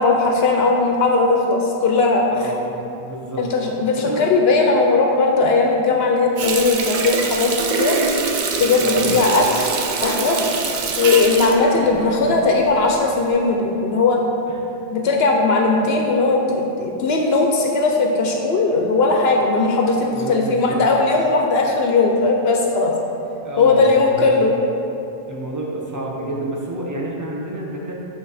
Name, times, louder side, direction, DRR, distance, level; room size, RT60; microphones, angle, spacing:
voice 1, 0.0-2.2 3.4-8.0 8.6-9.7 10.0-10.4 11.0-14.2 14.9-22.9 23.6-24.5, left 3 dB, 70° left, 1 dB, 0.8 m, -18 dB
voice 2, 2.3-3.4 4.0-4.3 8.8-9.1 11.9-12.3 14.5-14.7 20.1-20.8 21.3-21.4 23.4-24.5 25.3-28.0, right 2 dB, 20° right, -2 dB, 0.7 m, -29 dB
Water tap faucet, 6.4-12.7 13.1-13.3, right 5 dB, 55° right, 0.6 m, -24 dB
7.7 x 4.0 x 4.1 m, 2.9 s
omnidirectional pair, 1.1 m